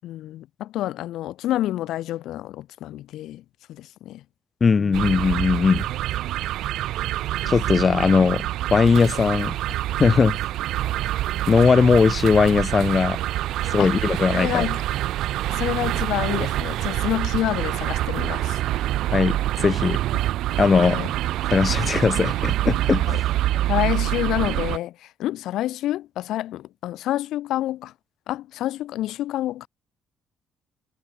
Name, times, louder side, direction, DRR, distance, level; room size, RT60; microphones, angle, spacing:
voice 1, 0.0-3.4 3.7-4.2 4.8-5.1 7.4-7.5 7.9-8.0 13.8-13.9 14.3-14.8 15.6-18.6 20.9-21.1 22.9-23.2 23.5-24.9 25.2-27.9 28.3-29.7, left 14 dB, 75° left, 6.0 m, -28 dB
voice 2, 4.6-5.8 7.5-8.5 8.7-9.5 10.0-10.4 11.5-13.2 13.7-14.7 19.1-20.0 20.6-21.0 21.5-23.1, left 5 dB, 25° left, 5.7 m, -19 dB
sound 1, 4.9-24.8, right 14 dB, 80° right, 4.6 m, -26 dB
cardioid pair, 170°, 0 cm